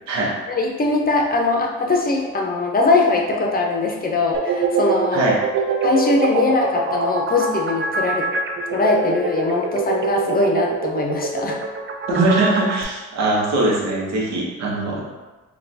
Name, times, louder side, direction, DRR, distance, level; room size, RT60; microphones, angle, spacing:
voice 1, 0.5-5.2 5.8-8.3 8.7-11.6, left 3 dB, 30° left, 0 dB, 0.6 m, -21 dB
sound 1, 4.3-12.8, right 5 dB, 40° right, 0.5 m, -24 dB
voice 2, 12.1-15.0, right 2 dB, 60° right, -3 dB, 0.9 m, -21 dB
4.2 x 2.4 x 2.7 m, 1.2 s
cardioid pair, 90°, 30 cm